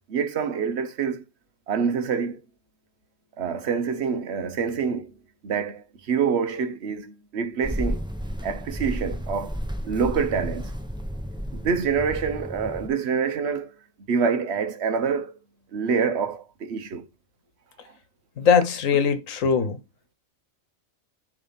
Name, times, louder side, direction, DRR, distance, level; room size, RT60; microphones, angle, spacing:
voice 1, 0.1-1.2 1.7-2.4 3.4-5.1 5.4-8.0 8.4-9.6 9.8-10.7 11.5-13.7 14.1-15.3 15.7-17.1, right 6 dB, 55° right, 1.1 m, -26 dB
sound 1, 7.6-12.9, equal, 5° right, 0.6 m, -32 dB
voice 2, 18.4-19.8, left 6 dB, 80° left, 1.3 m, -21 dB
7.2 x 3.4 x 5.5 m
omnidirectional pair, 1.4 m